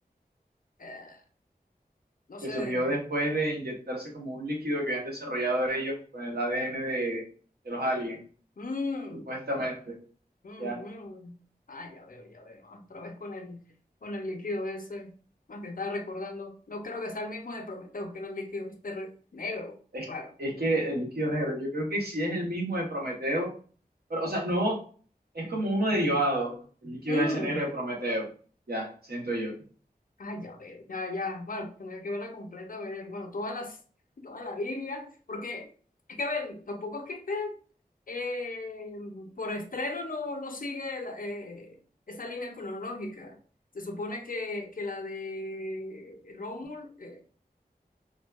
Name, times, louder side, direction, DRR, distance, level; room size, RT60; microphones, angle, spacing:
voice 1, 0.8-1.2 2.3-2.9 8.6-9.3 10.4-11.4 11.7-13.6 14.0-15.1 15.5-19.8 20.1-20.3 27.1-27.6 30.2-33.8 34.2-35.7 36.1-37.6 38.1-41.8 42.1-43.4 43.7-47.2, left 2 dB, 60° left, 0.5 m, -36 dB
voice 2, 2.4-7.2 7.6-8.2 9.3-10.0 10.6-10.9 19.9-20.1 20.4-23.5 24.1-24.8 25.3-26.5 26.8-28.3 28.7-29.6, right 1 dB, 75° right, 0.8 m, -29 dB
2.6 x 2.2 x 2.2 m
wide cardioid pair, 40°, 16 cm